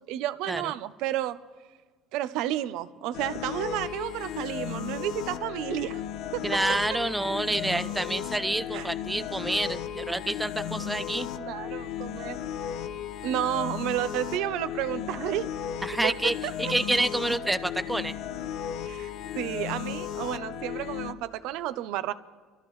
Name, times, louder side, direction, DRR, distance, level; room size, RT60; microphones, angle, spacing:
voice 1, 0.1-1.4 2.1-6.0 6.3-6.4 6.7-6.8 8.7-8.9 11.4-12.4 13.2-15.5 16.0-16.7 18.8-22.1, right 13 dB, 70° right, 14 dB, 0.6 m, -31 dB
sound 1, 3.1-21.1, left 9 dB, 65° left, 0.7 m, -35 dB
voice 2, 6.4-11.3 15.8-18.2, right 1 dB, 5° right, 14 dB, 0.4 m, -28 dB
24.0 x 13.5 x 3.2 m, 1.4 s
cardioid pair, 145°, 0 cm